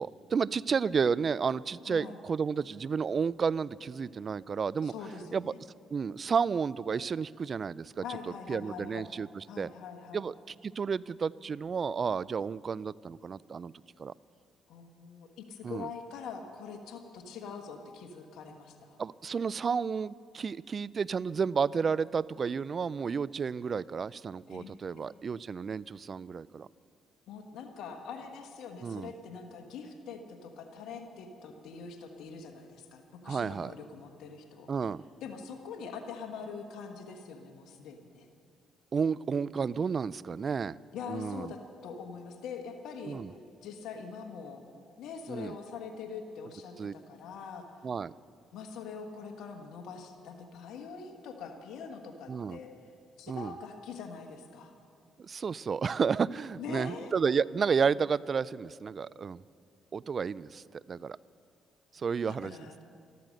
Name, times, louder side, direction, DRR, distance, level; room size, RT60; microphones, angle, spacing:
voice 1, 0.0-4.9 5.3-5.5 5.9-9.7 10.1-13.7 14.0-14.1 15.6-15.9 19.0-26.7 28.8-29.1 33.3-33.7 34.7-35.0 38.9-40.8 41.1-41.5 43.0-43.3 45.3-45.6 46.8-46.9 47.8-48.1 52.3-52.6 53.3-53.5 55.2-59.4 59.9-61.2 61.9-62.7, right 6 dB, 45° right, 21 dB, 0.3 m, -31 dB
voice 2, 1.9-2.2 4.8-5.6 8.0-9.1 9.5-10.3 14.7-19.0 24.5-25.1 27.3-34.7 35.2-38.3 40.9-43.2 43.6-44.6 45.0-47.7 48.5-52.7 53.2-54.7 56.6-57.1 62.3-62.7, left 5 dB, 75° left, 5 dB, 1.3 m, -43 dB
13.5 x 13.5 x 6.4 m, 2.5 s
supercardioid pair, 65°, 0 cm